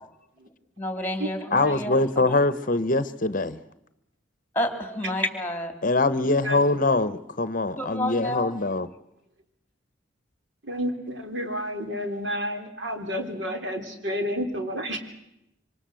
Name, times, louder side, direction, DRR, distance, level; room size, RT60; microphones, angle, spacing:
voice 1, 0.8-2.4 4.5-5.7 7.8-8.5, left 1 dB, 10° left, 8 dB, 3.1 m, -30 dB
voice 2, 1.5-3.6 5.8-8.9, left 2 dB, 45° left, 14 dB, 0.9 m, -23 dB
voice 3, 10.6-15.0, equal, 65° right, 5 dB, 3.7 m, -30 dB
26.5 x 25.5 x 7.7 m, 0.83 s
head